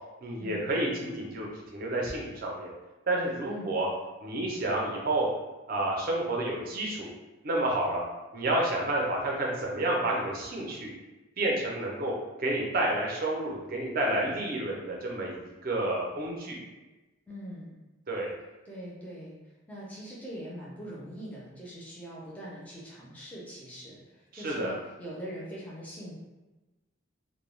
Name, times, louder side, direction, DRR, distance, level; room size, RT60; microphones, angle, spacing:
voice 1, 0.2-2.7 3.1-3.9 4.2-5.3 5.7-7.1 7.4-8.0 8.3-10.9 11.4-12.1 12.4-15.3 15.6-16.6 18.1-18.3 24.3-24.7, right 1 dB, 45° right, -2 dB, 0.5 m, -30 dB
voice 2, 17.3-17.8 18.7-19.4 19.7-26.1, equal, 5° left, -6 dB, 0.4 m, -42 dB
2.2 x 2.1 x 3.1 m, 1.1 s
head